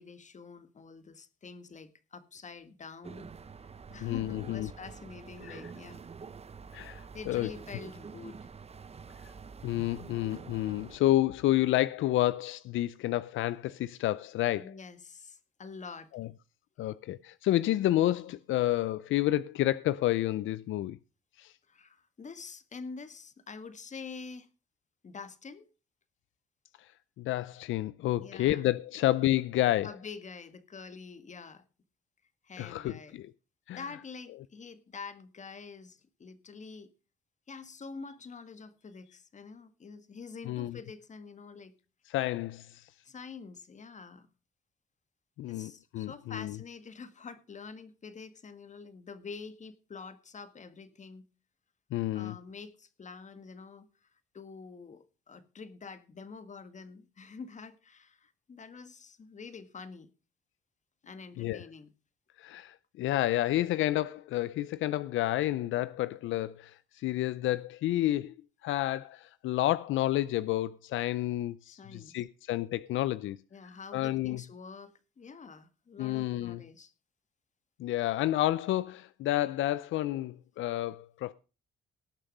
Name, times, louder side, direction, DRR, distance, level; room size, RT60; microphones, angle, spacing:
voice 1, 0.0-3.3 3.9-6.0 7.1-8.4 14.6-16.1 21.7-24.5 25.0-25.7 28.2-28.6 29.8-31.6 32.4-33.2 33.7-36.9 37.5-41.7 43.0-44.3 45.5-51.2 52.1-53.9 54.3-60.1 61.0-61.9 71.7-72.2 73.5-76.9, left 5 dB, 35° left, 1.6 m, -46 dB
sound 1, 3.0-11.0, right 5 dB, 30° right, 0.9 m, -47 dB
voice 2, 4.0-4.7 5.5-5.6 6.7-7.5 9.6-14.7 16.1-16.3 16.8-21.0 21.4-21.5 27.2-29.9 32.6-33.3 33.7-33.8 40.5-40.8 42.1-42.9 45.4-46.6 51.9-52.4 61.4-61.6 62.4-68.3 68.6-73.4 73.9-74.4 76.0-76.6 77.8-81.3, left 15 dB, 80° left, 0.5 m, -30 dB
18.5 x 6.5 x 5.4 m
cardioid pair, 90°, 20 cm